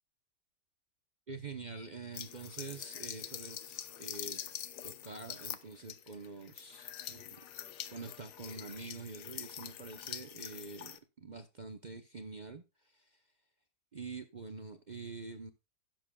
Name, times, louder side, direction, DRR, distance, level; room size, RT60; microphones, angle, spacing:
voice 1, 1.3-4.4 4.8-7.4 7.9-13.2 13.9-15.5, right 4 dB, 45° right, 0.6 m, -46 dB
sound 1, 2.1-11.0, left 10 dB, 70° left, 1.4 m, -45 dB
16.5 x 7.6 x 2.3 m
omnidirectional pair, 1.9 m